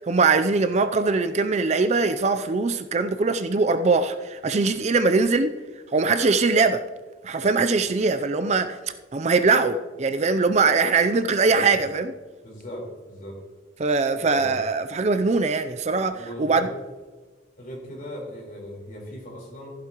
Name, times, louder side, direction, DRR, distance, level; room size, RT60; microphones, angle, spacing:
voice 1, 0.1-5.5 5.9-6.9 7.2-8.8 9.1-12.1 13.8-16.7, right 4 dB, 35° right, 0.4 m, -22 dB
voice 2, 11.4-11.8 12.4-13.3 14.2-14.6 16.1-16.7 17.6-19.7, left 1 dB, 45° left, 4.1 m, -38 dB
14.5 x 11.5 x 3.0 m
head